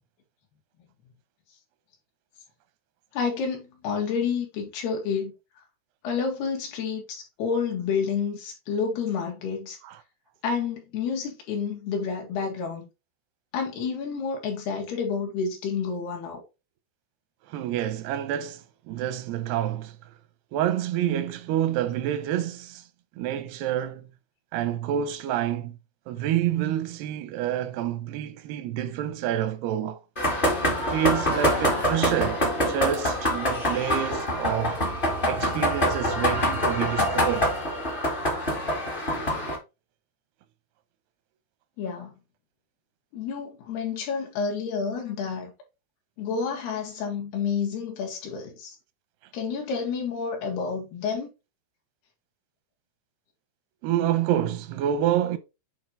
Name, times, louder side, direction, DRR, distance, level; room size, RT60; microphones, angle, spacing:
voice 1, 3.1-5.3 6.0-9.8 10.4-12.9 13.5-16.4 41.8-42.1 43.1-45.5 46.2-48.8 49.3-51.3, left 6 dB, 75° left, 3.7 m, -29 dB
voice 2, 17.5-20.0 20.5-22.8 23.2-24.1 24.5-25.8 26.1-30.0 30.9-34.8 35.3-37.5 53.8-55.4, right 11 dB, 90° right, 2.7 m, -28 dB
sound 1, 30.2-39.6, equal, 40° left, 0.7 m, -25 dB
8.5 x 3.0 x 3.9 m
omnidirectional pair, 4.6 m